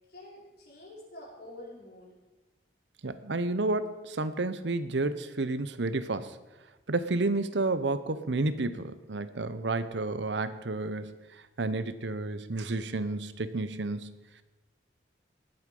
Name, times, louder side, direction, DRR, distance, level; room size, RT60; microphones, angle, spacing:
voice 1, 0.1-2.1, left 1 dB, 60° left, -4 dB, 5.5 m, -47 dB
voice 2, 3.0-6.4 6.9-11.2 11.6-14.2, right 2 dB, 85° right, 13 dB, 0.9 m, -31 dB
19.5 x 8.0 x 5.4 m, 1.1 s
head